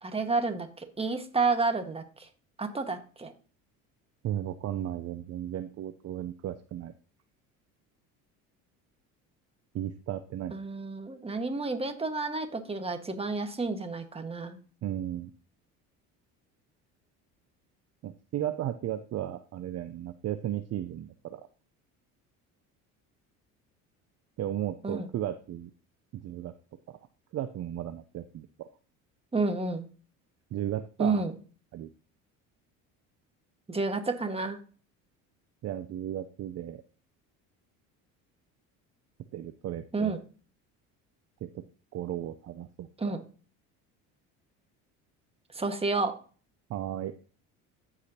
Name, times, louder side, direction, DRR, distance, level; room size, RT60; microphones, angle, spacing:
voice 1, 0.0-2.3 2.6-3.3 10.5-14.6 24.8-25.1 29.3-29.9 31.0-31.3 33.7-34.6 39.9-40.2 43.0-43.2 45.5-46.1, right 3 dB, 15° right, 7 dB, 1.5 m, -30 dB
voice 2, 4.2-6.9 9.7-10.6 14.8-15.3 18.0-21.4 24.4-25.7 26.1-26.5 26.9-27.0 27.3-28.7 30.5-31.2 31.7-31.9 35.6-36.8 39.3-40.2 41.9-43.2 46.7-47.1, right 12 dB, 45° right, 11 dB, 0.6 m, -35 dB
14.5 x 5.0 x 2.8 m, 0.38 s
supercardioid pair, 85°, 36 cm